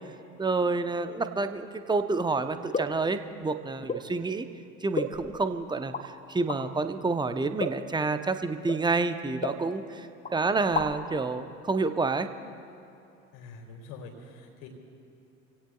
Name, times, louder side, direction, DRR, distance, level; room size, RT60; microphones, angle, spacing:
voice 1, 0.4-4.5 4.8-12.3, right 3 dB, 10° right, 9 dB, 0.9 m, -29 dB
sound 1, 2.7-3.1 3.9-4.1 4.9-5.5 5.9-6.1 6.5-6.6 7.6-7.9 8.7-8.8 9.4-10.0 10.2-10.3 10.6-11.1, left 3 dB, 20° left, 1.3 m, -32 dB
voice 2, 13.3-14.7, left 4 dB, 60° left, 2 dB, 3.0 m, -45 dB
27.5 x 17.0 x 2.4 m, 2.7 s
figure-of-eight pair, 60°, 36 cm